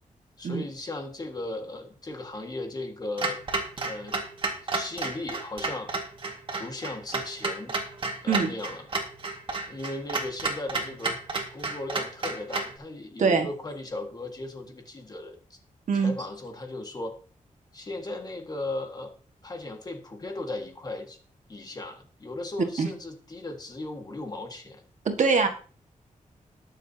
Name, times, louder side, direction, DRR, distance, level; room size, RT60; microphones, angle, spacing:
voice 1, 0.4-3.4 3.8-4.2 4.6-5.9 6.6-7.8 8.2-8.8 9.7-11.2 11.5-15.6 15.9-17.2 17.7-19.1 19.4-21.2 21.5-24.8, left 2 dB, 30° left, 4 dB, 1.8 m, -37 dB
Clock, 3.2-12.8, right 3 dB, 40° right, 1.9 m, -31 dB
voice 2, 25.0-25.5, right 5 dB, 65° right, 5 dB, 1.7 m, -23 dB
21.0 x 7.1 x 2.8 m, 0.39 s
wide cardioid pair, 175°, 14 cm